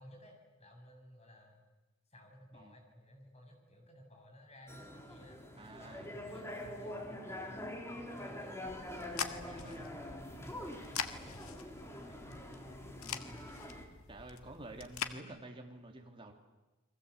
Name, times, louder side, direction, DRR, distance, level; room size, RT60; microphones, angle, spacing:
voice 1, 0.0-1.6 2.1-5.4 5.7-9.8 10.4-13.4, equal, 30° left, 2 dB, 7.2 m, -57 dB
sound 1, 4.7-13.9, left 1 dB, 10° left, 3.5 m, -45 dB
voice 2, 5.6-6.1 9.6-9.8 14.1-16.3, right 2 dB, 25° right, 2 dB, 3.2 m, -49 dB
sound 2, 8.7-15.2, left 7 dB, 75° left, 1.8 m, -44 dB
30.0 x 22.5 x 8.3 m, 1.1 s
head